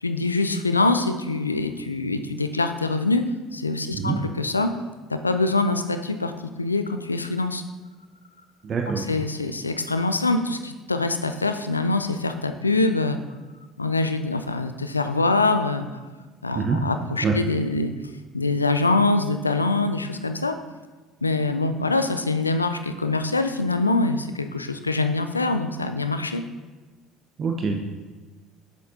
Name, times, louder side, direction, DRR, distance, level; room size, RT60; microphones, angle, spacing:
voice 1, 0.0-3.2 3.5-4.7 5.1-6.3 6.6-7.6 9.0-13.2 13.8-15.9 16.4-17.9 18.3-20.6 21.2-26.4, left 3 dB, 90° left, 8 dB, 0.3 m, -24 dB
voice 2, 8.6-9.1 16.5-16.8 17.2-17.4 27.4-27.8, right 4 dB, 40° right, 2 dB, 0.7 m, -25 dB
7.8 x 6.5 x 2.7 m, 1.3 s
figure-of-eight pair, 60°, 0 cm